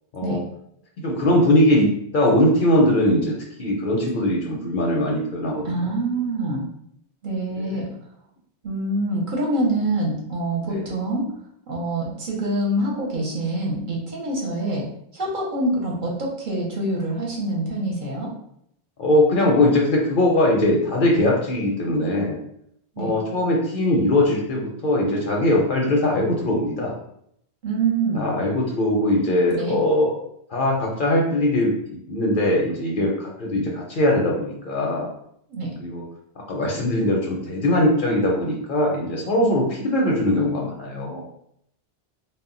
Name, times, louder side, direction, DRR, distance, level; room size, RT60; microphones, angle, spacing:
voice 1, 1.0-5.9 7.7-7.9 10.7-10.8 19.0-22.4 23.0-26.9 28.1-30.1 30.5-35.1 35.8-36.0 36.5-41.2, left 1 dB, 60° left, -1 dB, 0.6 m, -21 dB
voice 2, 5.6-6.6 7.2-7.8 8.6-11.3 11.7-14.9 15.1-18.3 23.0-23.1 27.6-28.3 29.5-29.7 35.5-35.7, right 2 dB, 55° right, -4 dB, 0.7 m, -25 dB
2.1 x 2.0 x 3.6 m, 0.72 s
omnidirectional pair, 1.1 m